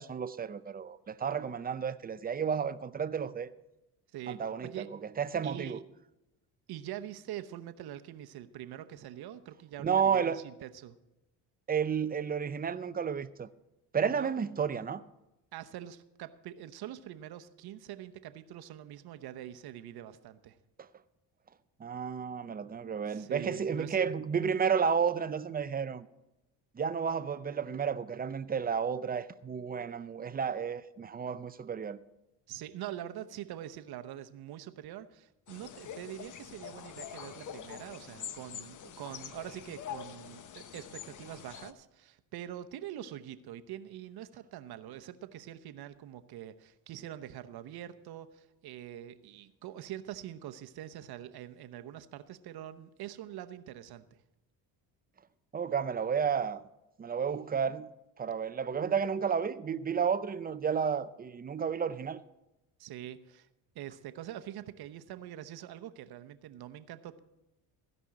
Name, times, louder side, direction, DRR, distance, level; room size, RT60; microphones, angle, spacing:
voice 1, 0.0-3.5 4.3-5.8 9.8-10.4 11.7-13.5 13.9-15.0 21.8-26.1 26.7-32.0 55.5-56.6 57.0-57.9 58.2-62.2, right 7 dB, 20° right, 0.6 m, -32 dB
voice 2, 4.1-4.9 5.4-5.8 6.7-11.0 14.1-14.3 15.5-20.6 23.1-24.1 32.5-54.1 62.8-63.5 63.7-67.2, right 12 dB, 60° right, 0.9 m, -44 dB
sound 1, 35.5-41.7, left 9 dB, 45° left, 0.9 m, -45 dB
16.0 x 5.4 x 7.4 m
supercardioid pair, 80°, 41 cm